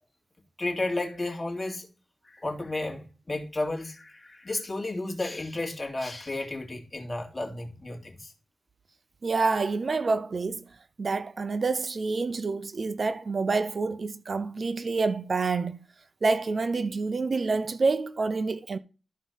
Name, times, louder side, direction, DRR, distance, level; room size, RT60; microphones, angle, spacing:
voice 1, 0.6-1.9 2.2-8.3, left 2 dB, 30° left, 3.0 m, -33 dB
voice 2, 9.2-10.6 11.0-15.8 16.2-18.8, right 4 dB, 55° right, 0.6 m, -27 dB
13.0 x 4.7 x 5.5 m
wide cardioid pair, 80°, 0 cm